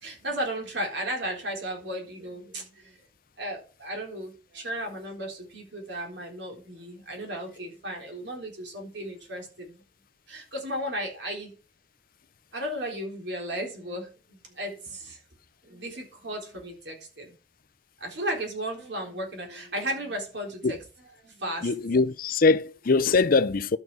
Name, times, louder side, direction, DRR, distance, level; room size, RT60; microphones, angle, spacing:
voice 1, 0.0-3.0 3.4-9.8 10.3-11.6 12.5-15.2 15.6-17.3 18.0-20.8 21.2-21.7, right 1 dB, 70° right, 3.8 m, -35 dB
voice 2, 21.6-23.8, left 4 dB, 50° left, 0.6 m, -22 dB
11.5 x 6.8 x 4.7 m
head